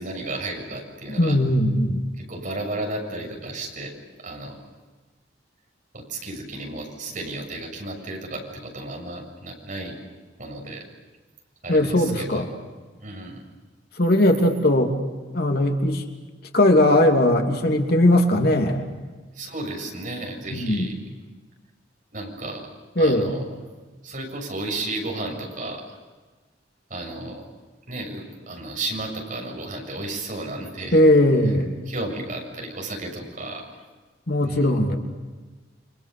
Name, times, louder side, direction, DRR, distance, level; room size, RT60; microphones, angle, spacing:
voice 1, 0.0-1.4 2.2-3.9 4.2-4.6 5.9-10.0 10.4-10.8 11.6-12.5 13.0-13.4 19.3-21.0 22.1-22.7 23.0-23.5 24.0-26.0 26.9-27.4 27.9-31.0 31.9-33.6 34.4-34.8, right 2 dB, 50° right, 1 dB, 7.3 m, -33 dB
voice 2, 1.1-2.0 11.7-12.4 14.0-14.9 15.3-16.0 16.5-18.9 20.5-20.9 23.0-23.3 30.9-31.7 34.3-35.0, left 1 dB, 60° left, 3 dB, 3.0 m, -19 dB
30.0 x 25.5 x 6.9 m, 1.3 s
head